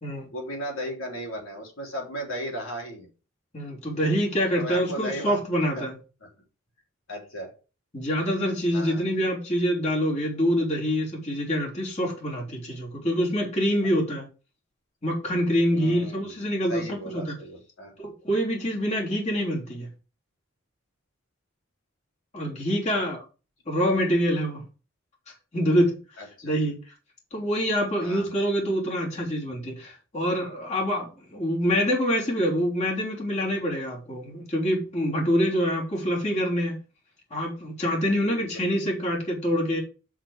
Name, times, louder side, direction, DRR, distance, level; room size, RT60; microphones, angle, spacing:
voice 1, 0.3-3.1 4.5-5.4 5.7-5.9 6.2-6.3 7.1-7.5 8.7-9.0 15.7-16.4 16.7-17.9 22.9-23.0 26.2-26.5 28.0-28.3 38.2-38.6, equal, 80° left, 3.7 m, -35 dB
voice 2, 3.5-6.0 7.9-14.3 15.0-17.3 18.0-19.9 22.3-23.2 23.7-24.6 25.5-26.0 26.4-26.8 27.3-36.8 37.3-39.8, equal, 35° left, 3.3 m, -26 dB
6.3 x 6.0 x 5.0 m
head